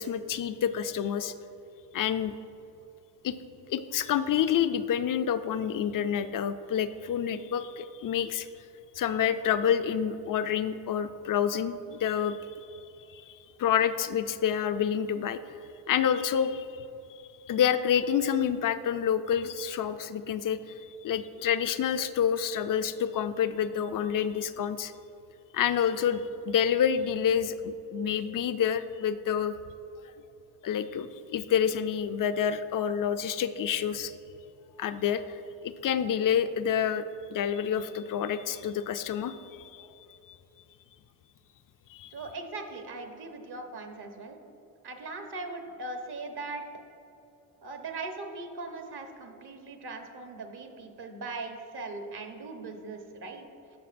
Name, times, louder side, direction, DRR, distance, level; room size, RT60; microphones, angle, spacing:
voice 1, 0.0-1.3 1.9-2.4 3.2-3.3 3.7-8.5 9.0-12.4 13.1-15.4 15.9-16.9 17.5-24.9 25.5-29.5 30.6-34.1 34.8-37.0 37.3-39.9 41.9-42.1, left 8 dB, 45° left, 11 dB, 0.5 m, -28 dB
voice 2, 42.1-44.4 44.8-46.6 47.6-53.5, right 3 dB, 55° right, 5 dB, 1.1 m, -39 dB
11.0 x 6.6 x 2.6 m, 2.8 s
supercardioid pair, 50°, 47 cm